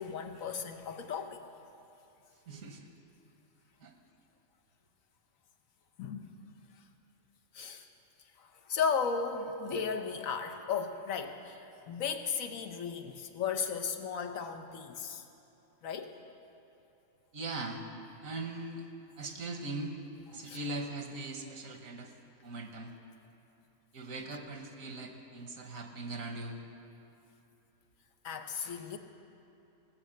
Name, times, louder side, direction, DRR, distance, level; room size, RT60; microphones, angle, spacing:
voice 1, 0.0-1.4 6.0-6.4 7.5-7.9 8.4-15.2 15.8-16.1 20.4-20.6 28.2-29.0, left 6 dB, 80° left, 5 dB, 1.3 m, -35 dB
voice 2, 2.5-2.9 3.8-3.9 17.3-17.8 18.2-18.8 19.2-20.0 20.3-22.1 22.4-22.9 23.9-26.6, right 2 dB, 75° right, 4 dB, 1.6 m, -40 dB
18.0 x 6.6 x 7.8 m, 2.8 s
omnidirectional pair, 1.4 m